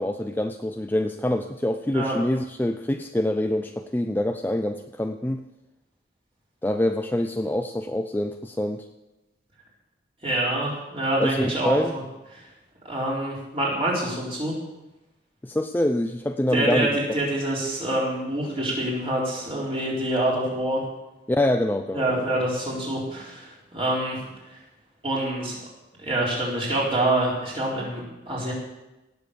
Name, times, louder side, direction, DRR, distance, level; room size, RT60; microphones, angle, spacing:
voice 1, 0.0-5.4 6.6-8.8 11.2-12.0 15.4-16.9 21.3-22.3, left 1 dB, 10° left, 6 dB, 0.4 m, -25 dB
voice 2, 10.2-11.8 12.4-12.5 12.8-14.5 16.5-20.8 21.9-24.2 24.5-24.6 25.0-25.6 26.0-28.5, right 1 dB, 30° right, -4 dB, 4.1 m, -26 dB
18.0 x 7.0 x 6.9 m, 1.0 s
head